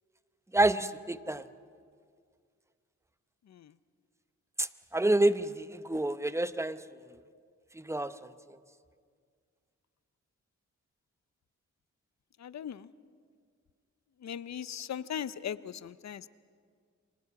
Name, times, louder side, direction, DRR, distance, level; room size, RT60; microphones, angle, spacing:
voice 1, 0.5-1.4 4.6-6.8 7.7-8.1, right 1 dB, 10° right, 12 dB, 0.8 m, -28 dB
voice 2, 12.4-12.9 14.2-16.3, left 9 dB, 65° left, 17 dB, 0.7 m, -39 dB
30.0 x 25.5 x 4.9 m, 2.1 s
cardioid pair, 75°, 30 cm